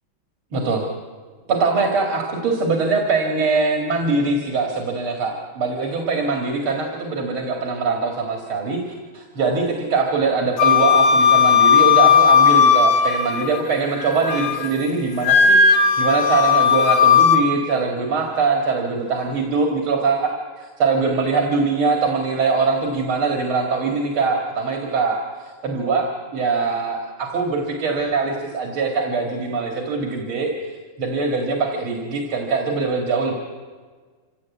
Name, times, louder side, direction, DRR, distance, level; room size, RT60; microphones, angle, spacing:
voice 1, 0.5-0.8 1.5-20.3 20.6-26.1 26.3-33.3, right 4 dB, 90° right, 1 dB, 3.0 m, -22 dB
Wind instrument woodwind instrument, 10.6-13.6 14.0-14.7 15.2-17.4, left 6 dB, 65° left, 2.1 m, -15 dB
25.5 x 16.5 x 8.4 m, 1.5 s
omnidirectional pair, 2.3 m